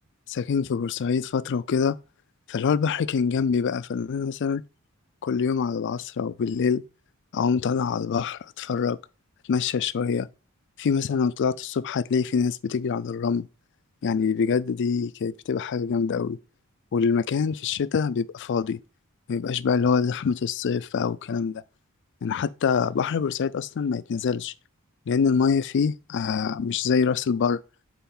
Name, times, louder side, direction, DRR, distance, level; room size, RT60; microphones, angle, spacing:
voice 1, 0.3-2.0 2.5-4.6 5.2-6.8 7.3-9.0 9.5-10.3 10.8-13.5 14.0-16.4 16.9-18.8 19.3-21.6 22.2-24.5 25.1-27.6, left 6 dB, 55° left, 0.4 m, -25 dB
6.9 x 4.6 x 3.8 m
head